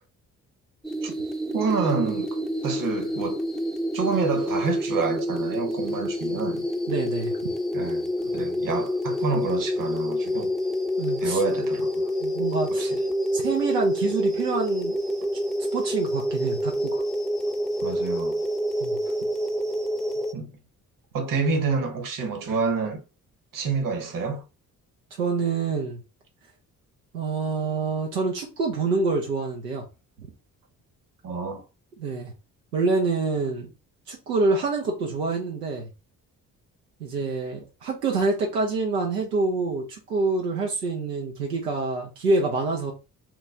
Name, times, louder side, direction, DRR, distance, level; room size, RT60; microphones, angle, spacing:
sound 1, 0.8-20.3, equal, ahead, 0.6 m, -27 dB
voice 1, 1.5-2.4 2.6-3.4 3.9-6.7 7.7-10.5 11.2-12.1 12.7-13.0 17.8-18.4 20.3-20.5 21.1-23.0 23.5-24.4 31.2-31.6, right 4 dB, 45° right, 1.1 m, -28 dB
voice 2, 6.9-7.4 11.0-11.4 12.2-12.9 13.3-15.0 15.7-17.0 18.8-19.0 25.2-26.0 27.1-29.8 30.2-30.3 32.0-32.3 32.7-33.7 34.1-35.9 37.0-42.9, right 3 dB, 85° right, 0.7 m, -26 dB
3.0 x 2.2 x 3.7 m
figure-of-eight pair, 40°, 46 cm